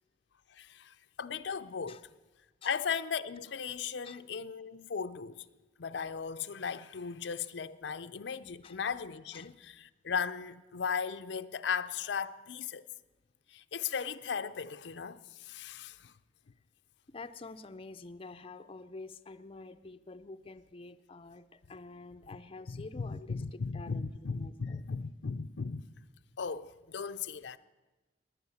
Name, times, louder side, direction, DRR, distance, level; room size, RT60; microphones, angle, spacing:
voice 1, 0.5-2.1 2.6-5.5 5.8-12.9 13.5-16.1 22.7-25.8 26.4-27.6, left 6 dB, 80° left, 0.5 m, -37 dB
voice 2, 17.1-24.8, left 3 dB, 30° left, 0.5 m, -48 dB
19.0 x 10.0 x 7.1 m
head